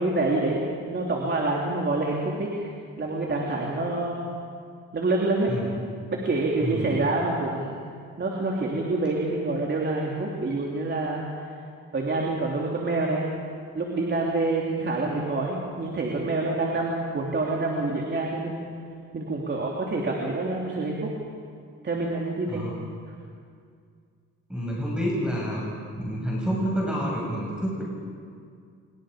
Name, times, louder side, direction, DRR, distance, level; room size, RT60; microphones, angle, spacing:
voice 1, 0.0-4.3 4.9-5.5 6.1-7.8 8.2-11.3 11.9-13.3 13.7-18.8 19.1-21.1 21.8-22.7, right 2 dB, 35° right, -2 dB, 3.3 m, -27 dB
voice 2, 24.5-25.6 26.0-27.8, equal, 5° right, -4 dB, 6.4 m, -28 dB
26.5 x 23.0 x 5.1 m, 2.2 s
cardioid pair, 90°, 30 cm